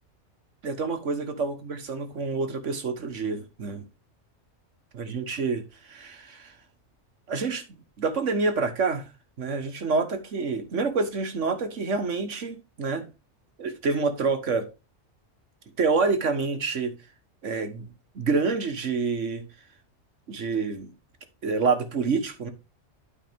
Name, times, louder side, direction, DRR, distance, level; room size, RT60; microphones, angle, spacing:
voice 1, 0.6-3.8 4.9-6.5 7.3-9.1 9.4-13.1 13.6-14.7 15.8-17.0 17.4-17.9 18.1-19.4 20.3-20.9 21.4-22.5, right 4 dB, 85° right, 1.7 m, -27 dB
12.0 x 4.8 x 3.5 m
omnidirectional pair, 1.2 m